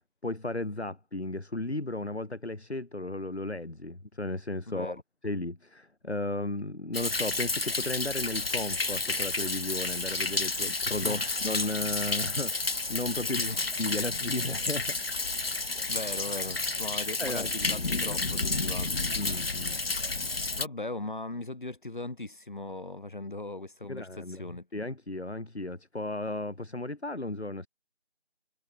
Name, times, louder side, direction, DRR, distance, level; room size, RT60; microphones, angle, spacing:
voice 1, 0.2-4.9 5.2-12.6 12.9-13.4 13.8-14.9 17.2-17.5 19.2-19.8 23.9-24.4 24.7-27.7, left 2 dB, 80° left, 5.8 m, -34 dB
voice 2, 4.7-5.0 11.0-11.3 13.2-13.7 15.4-15.6 15.9-19.0 20.6-24.7, left 2 dB, 50° left, 7.3 m, -39 dB
Thunder, 6.9-20.7, left 3 dB, 65° left, 1.3 m, -31 dB
figure-of-eight pair, 175°, 32 cm